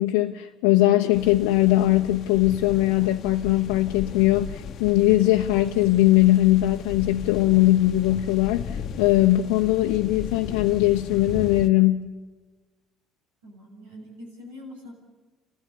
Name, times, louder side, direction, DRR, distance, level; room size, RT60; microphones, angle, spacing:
voice 1, 0.0-12.1, left 16 dB, 75° left, 2 dB, 0.9 m, -20 dB
sound 1, 1.1-11.7, left 7 dB, 55° left, 1.2 m, -37 dB
voice 2, 13.4-14.9, left 1 dB, 80° right, 1 dB, 6.8 m, -43 dB
29.5 x 15.5 x 9.8 m, 1.2 s
hypercardioid pair, 55°, 0 cm